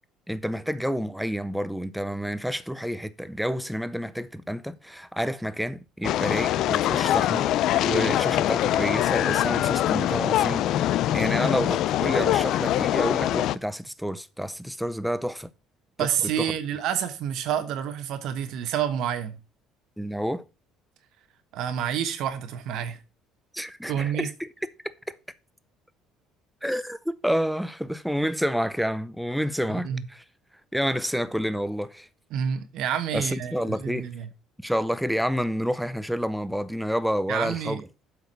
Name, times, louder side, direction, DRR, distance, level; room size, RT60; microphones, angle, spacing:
voice 1, 0.3-7.5 7.8-10.6 11.1-15.5 16.0-16.1 16.4-16.5 20.0-20.4 23.5-24.5 26.6-30.2 30.7-32.1 33.1-34.1 34.6-37.8, equal, ahead, 0.6 m, -29 dB
sound 1, 6.0-13.5, left 13 dB, 60° left, 0.4 m, -23 dB
voice 2, 16.0-19.3 21.5-23.0 23.9-24.3 29.8-30.0 32.3-34.3 37.3-37.8, right 9 dB, 65° right, 1.1 m, -28 dB
7.8 x 4.7 x 5.4 m
cardioid pair, 125°, 0 cm